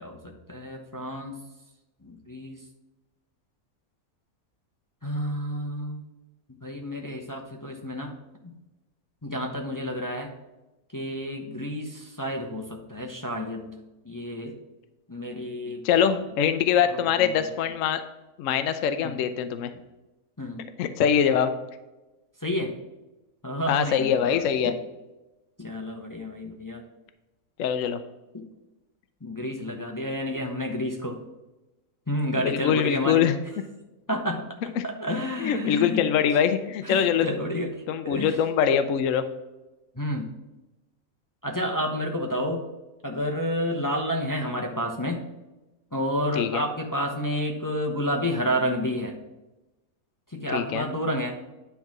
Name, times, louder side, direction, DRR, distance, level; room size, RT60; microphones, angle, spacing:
voice 1, 0.0-1.3 2.0-2.6 5.0-6.0 6.6-8.1 9.2-10.3 10.9-13.7 14.0-14.5 15.1-15.8 16.9-17.3 19.0-19.2 20.4-20.6 22.4-22.7 23.4-24.7 25.6-26.8 28.3-28.4 29.2-31.2 32.1-33.2 34.1-36.1 36.8-38.4 39.9-40.3 41.4-42.7 43.0-45.2 45.9-49.1 50.3-51.3, equal, 20° left, 1 dB, 0.7 m, -30 dB
voice 2, 15.8-18.0 18.4-19.7 20.8-21.5 23.7-24.7 27.6-28.0 32.4-33.4 34.8-34.9 35.4-37.3 37.9-39.2 46.4-46.6 50.5-50.9, left 8 dB, 70° left, 9 dB, 0.9 m, -23 dB
10.0 x 3.5 x 5.9 m, 1.1 s
omnidirectional pair, 1.5 m